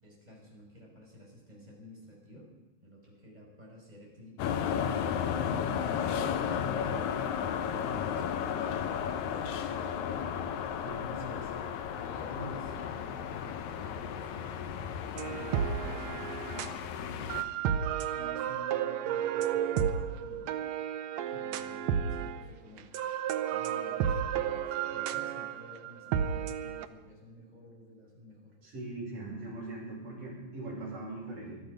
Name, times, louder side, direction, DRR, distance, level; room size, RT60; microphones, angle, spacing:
voice 1, 0.0-2.5 2.8-5.3 10.8-17.8 18.1-20.6 21.2-22.9 23.5-28.5, equal, 10° right, -3 dB, 5.5 m, -51 dB
sound 1, 4.4-17.4, left 8 dB, 70° left, 2.0 m, -34 dB
sound 2, 15.2-16.8 17.3-22.5 22.8-26.9, right 9 dB, 80° right, 1.5 m, -32 dB
voice 2, 28.6-31.6, right 2 dB, 60° right, -4 dB, 7.4 m, -40 dB
21.5 x 12.5 x 5.3 m, 1.1 s
omnidirectional pair, 4.0 m